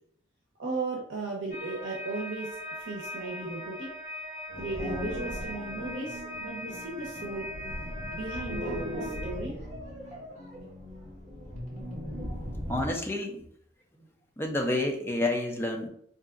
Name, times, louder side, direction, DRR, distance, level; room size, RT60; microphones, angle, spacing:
voice 1, 0.6-3.9 4.6-7.5 8.1-9.5, right 3 dB, 75° right, -1 dB, 0.7 m, -36 dB
sound 1, 1.5-9.3, left 1 dB, 45° left, 1.2 m, -40 dB
sound 2, 4.5-13.0, equal, 35° right, 1.2 m, -38 dB
voice 2, 12.7-13.4 14.4-15.9, left 2 dB, 10° left, 3 dB, 0.4 m, -29 dB
4.7 x 2.7 x 2.4 m, 0.66 s
head